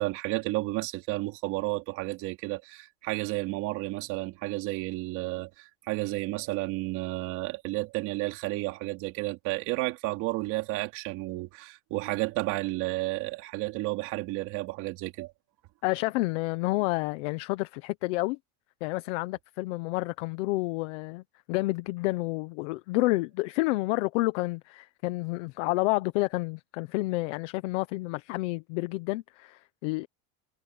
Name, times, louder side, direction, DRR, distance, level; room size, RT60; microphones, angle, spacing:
voice 1, 0.0-15.3, right 21 dB, 45° right, 3.4 m, -32 dB
voice 2, 15.8-18.4 18.8-21.2 21.5-30.1, left 21 dB, 55° left, 1.0 m, -29 dB
supercardioid pair, 175°, 42 cm